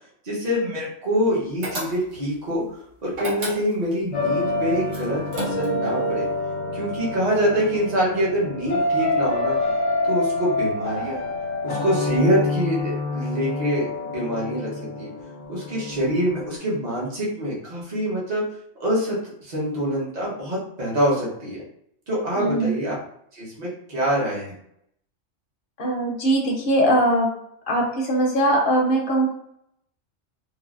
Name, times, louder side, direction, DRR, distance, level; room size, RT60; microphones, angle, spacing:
voice 1, 0.2-2.6 3.0-6.2 6.7-9.6 10.0-11.2 11.6-15.1 15.5-18.5 18.8-21.6 22.1-22.9 23.3-24.5, equal, 35° right, -6 dB, 0.9 m, -25 dB
sound 1, 1.6-2.3 3.1-4.0 4.9-5.9, right 1 dB, 60° right, 1.1 m, -32 dB
sound 2, 4.1-16.6, left 2 dB, 80° left, 1.0 m, -27 dB
voice 2, 22.4-22.7 25.8-27.3 27.7-29.3, right 1 dB, 50° left, -1 dB, 0.7 m, -21 dB
3.2 x 2.1 x 2.4 m, 0.73 s
omnidirectional pair, 1.3 m